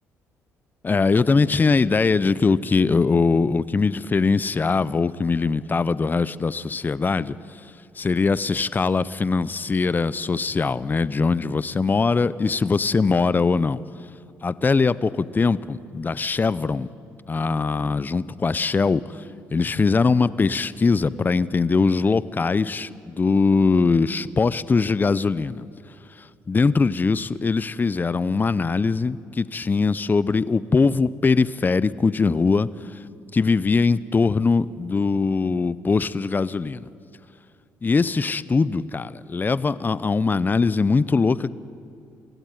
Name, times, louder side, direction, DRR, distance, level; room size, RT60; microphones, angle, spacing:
voice 1, 0.8-7.4 8.0-13.8 14.4-16.9 17.3-19.2 19.5-25.7 26.5-32.7 33.3-36.9 37.8-41.5, left 4 dB, 30° left, 18 dB, 0.7 m, -21 dB
23.0 x 16.5 x 9.4 m, 2.5 s
supercardioid pair, 65°, 7 cm